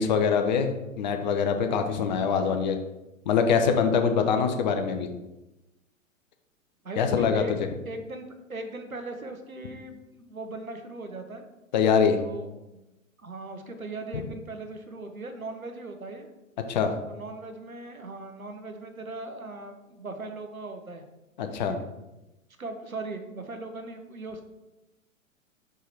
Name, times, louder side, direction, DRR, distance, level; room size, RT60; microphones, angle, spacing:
voice 1, 0.0-2.8 3.3-5.1 7.0-7.4 11.7-12.2 16.7-16.9 21.4-21.7, left 6 dB, 35° left, 6 dB, 0.7 m, -24 dB
voice 2, 6.8-7.5 7.8-11.4 12.2-12.8 13.2-16.3 17.1-21.0 21.6-21.8 22.6-24.4, right 2 dB, 85° right, 6 dB, 1.1 m, -39 dB
5.9 x 4.5 x 4.6 m, 0.99 s
figure-of-eight pair, 110°, 41 cm